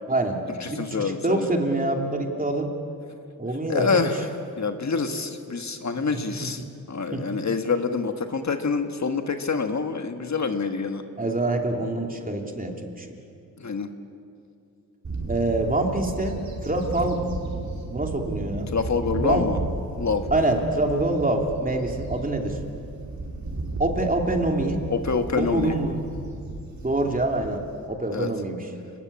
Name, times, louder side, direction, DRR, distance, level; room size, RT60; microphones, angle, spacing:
voice 1, 0.1-0.4 0.7-2.7 3.4-4.1 6.6-6.7 7.1-7.2 11.2-13.1 15.3-17.2 17.8-18.7 19.2-19.4 20.3-22.6 23.8-24.8 25.3-26.0 26.8-27.6 27.9-28.6, right 2 dB, 25° right, 2 dB, 3.1 m, -25 dB
voice 2, 0.6-1.5 3.7-11.0 13.6-13.9 18.7-19.6 20.0-20.3 24.9-25.8 28.1-28.3, left 5 dB, 50° left, 6 dB, 1.6 m, -26 dB
Bird / Wind, 15.0-27.8, right 2 dB, 50° right, 5.2 m, -34 dB
30.0 x 21.0 x 8.7 m, 2.5 s
wide cardioid pair, 110°, 35 cm